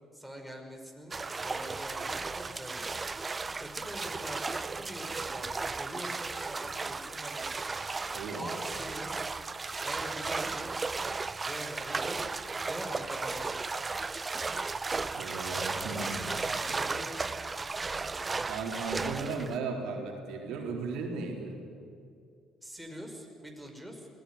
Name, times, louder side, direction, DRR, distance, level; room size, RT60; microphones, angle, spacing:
voice 1, 0.1-2.9 3.6-7.8 8.4-9.3 9.8-10.9 11.4-12.2 12.7-13.5 16.3-18.6 22.6-24.1, equal, ahead, 2 dB, 5.6 m, -44 dB
sound 1, 1.1-19.6, right 4 dB, 30° right, 0.8 m, -35 dB
voice 2, 8.1-8.5 15.1-16.3 16.7-16.8 18.5-21.6, right 4 dB, 75° right, 1 dB, 4.0 m, -36 dB
20.5 x 17.5 x 9.7 m, 2.5 s
supercardioid pair, 65°, 0 cm